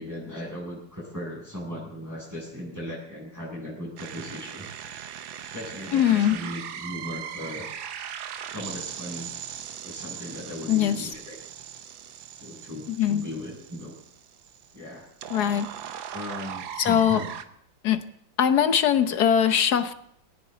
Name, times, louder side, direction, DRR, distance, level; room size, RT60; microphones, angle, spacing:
voice 1, 0.0-4.7 5.4-7.7 8.5-9.3 9.8-11.4 12.4-13.9 14.7-15.1 16.1-17.3, left 1 dB, 10° right, -5 dB, 7.3 m, -37 dB
sound 1, 4.0-17.4, right 9 dB, 90° right, 1.7 m, -39 dB
voice 2, 5.9-6.4 10.7-11.1 12.9-13.3 15.3-15.7 16.8-17.2 17.8-18.0 18.4-19.9, left 9 dB, 60° left, 10 dB, 1.4 m, -21 dB
19.5 x 18.0 x 4.0 m, 0.68 s
omnidirectional pair, 2.0 m